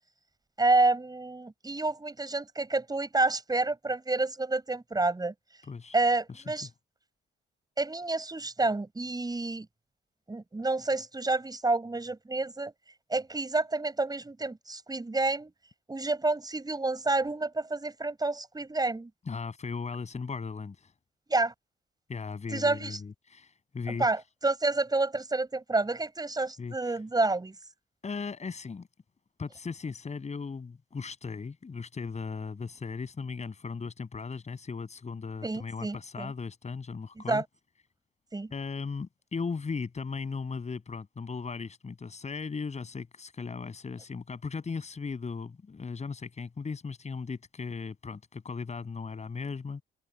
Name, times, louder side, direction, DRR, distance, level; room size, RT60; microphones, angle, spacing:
voice 1, 0.6-5.3 5.9-6.7 7.8-9.7 10.3-12.7 13.1-15.5 15.9-19.1 21.3-21.5 22.5-23.0 24.0-27.6 35.4-36.3 37.3-37.4 38.3-38.5, right 2 dB, 20° right, 7.4 m, -29 dB
voice 2, 6.3-6.7 19.3-20.9 22.1-24.1 26.6-27.0 28.0-28.9 29.4-37.4 38.5-49.8, left 5 dB, 35° left, 7.6 m, -37 dB
cardioid pair, 90°, 20 cm